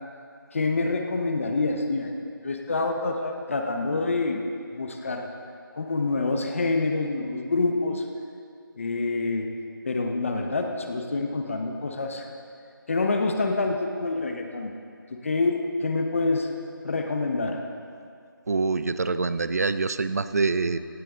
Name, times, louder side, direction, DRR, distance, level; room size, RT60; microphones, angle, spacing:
voice 1, 0.5-4.4 4.7-5.3 5.8-8.1 8.7-9.5 9.8-12.3 12.9-14.7 15.1-16.5 16.8-17.6, left 3 dB, 35° left, 3 dB, 1.2 m, -27 dB
voice 2, 18.5-20.8, right 4 dB, 45° right, 13 dB, 0.6 m, -25 dB
18.0 x 17.0 x 3.9 m, 2.3 s
figure-of-eight pair, 165°, 12 cm